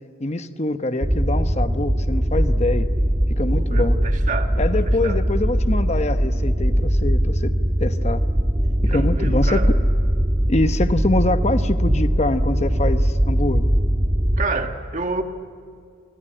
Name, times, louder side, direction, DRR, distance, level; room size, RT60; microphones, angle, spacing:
voice 1, 0.2-2.9 3.4-4.0 4.6-7.5 7.8-8.2 8.9-9.8 10.5-13.7, left 2 dB, 35° left, 9 dB, 1.0 m, -24 dB
sound 1, 1.0-14.5, equal, 20° right, 1.4 m, -20 dB
voice 2, 3.4-5.2 8.9-9.7 14.4-15.2, right 3 dB, 40° right, 6 dB, 1.5 m, -29 dB
26.0 x 25.5 x 9.0 m, 2.2 s
head